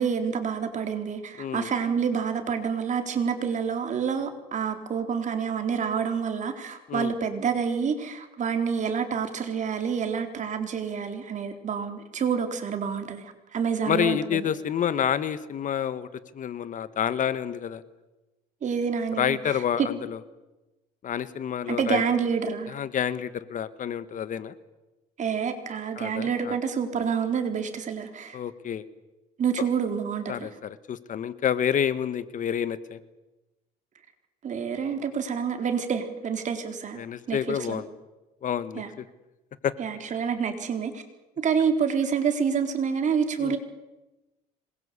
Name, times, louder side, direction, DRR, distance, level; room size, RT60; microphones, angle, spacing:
voice 1, 0.0-13.2 13.5-14.4 18.6-19.9 21.7-22.7 25.2-28.4 29.4-30.5 34.4-37.0 37.3-37.8 38.8-38.9 39.8-41.0 41.4-43.6, right 6 dB, 45° right, 6 dB, 4.0 m, -28 dB
voice 2, 1.4-1.7 6.9-7.1 13.8-16.1 16.3-17.8 19.2-20.2 21.0-22.0 22.7-24.5 26.0-26.6 28.3-28.8 29.6-29.7 30.3-33.0 37.0-37.9 38.4-38.8 39.6-39.7 43.4-43.6, left 9 dB, 50° left, 14 dB, 1.5 m, -28 dB
26.5 x 21.5 x 8.4 m, 1.0 s
cardioid pair, 110°, 17 cm